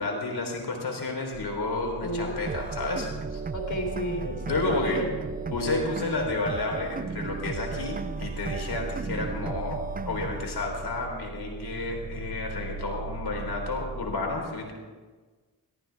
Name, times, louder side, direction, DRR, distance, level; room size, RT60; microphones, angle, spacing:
voice 1, 0.0-3.4 4.4-5.0 5.5-14.7, left 3 dB, 65° left, 1 dB, 3.9 m, -31 dB
sound 1, 1.3-14.0, right 3 dB, 45° right, 5.2 m, -39 dB
voice 2, 2.0-2.4 3.5-5.2 5.5-6.1, left 1 dB, 45° left, 2 dB, 3.8 m, -32 dB
sound 2, 2.5-10.5, right 5 dB, 20° right, 0.5 m, -36 dB
18.5 x 14.0 x 3.5 m, 1.4 s
cardioid pair, 50°, 41 cm